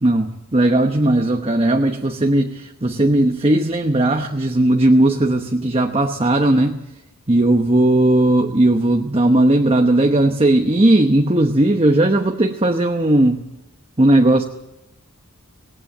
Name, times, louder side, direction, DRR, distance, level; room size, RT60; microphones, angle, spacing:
voice 1, 0.0-6.8 7.3-13.4 14.0-14.4, right 1 dB, 25° right, 4 dB, 1.0 m, -17 dB
18.5 x 18.0 x 7.9 m, 0.88 s
head